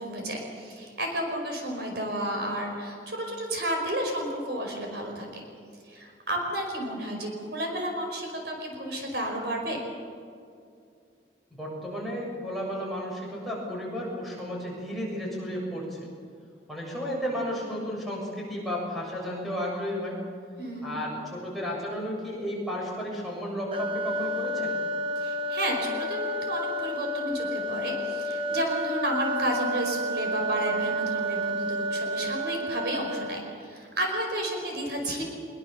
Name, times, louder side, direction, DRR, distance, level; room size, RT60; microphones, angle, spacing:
voice 1, 0.0-5.4 5.8-9.8 20.6-20.9 25.2-35.2, right 1 dB, 60° right, 2 dB, 5.2 m, -32 dB
voice 2, 11.5-16.0 16.7-20.2 20.8-24.8, equal, ahead, -5 dB, 7.3 m, -33 dB
sound 1, 23.7-33.6, equal, 30° right, 1.5 m, -30 dB
24.5 x 23.0 x 7.0 m, 2.4 s
head